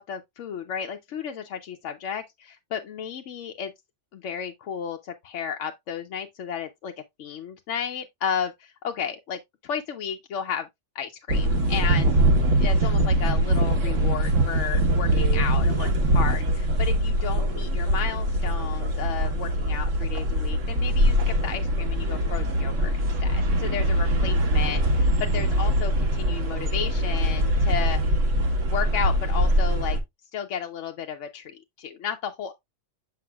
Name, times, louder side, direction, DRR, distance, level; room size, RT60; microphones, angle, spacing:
voice 1, 0.0-3.7 4.1-6.9 7.2-10.7 10.9-12.1 12.6-28.0 28.7-30.0 30.3-32.5, left 7 dB, 75° left, 1.0 m, -33 dB
sound 1, 11.3-30.0, right 1 dB, 75° right, 1.6 m, -23 dB
7.7 x 5.3 x 2.3 m
omnidirectional pair, 1.3 m